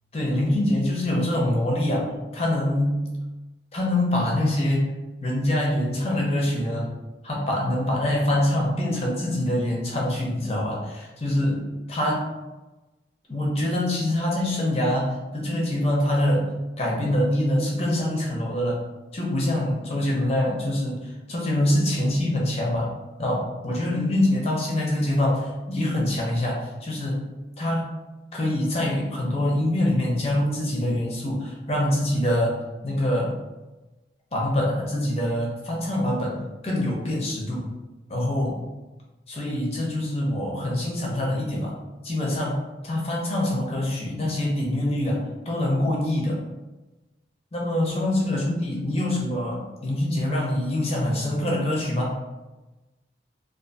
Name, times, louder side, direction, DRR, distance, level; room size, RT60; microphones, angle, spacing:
voice 1, 0.1-2.1 2.3-3.1 3.7-4.9 5.2-6.9 7.2-12.3 13.3-16.5 16.8-18.8 19.1-22.9 23.2-27.2 27.6-27.8 28.3-32.5 32.8-33.3 34.3-36.4 36.6-37.7 38.1-38.6 39.3-41.7 42.0-46.4 47.5-52.1, left 1 dB, 35° left, -3 dB, 0.6 m, -25 dB
2.6 x 2.4 x 2.4 m, 1.1 s
head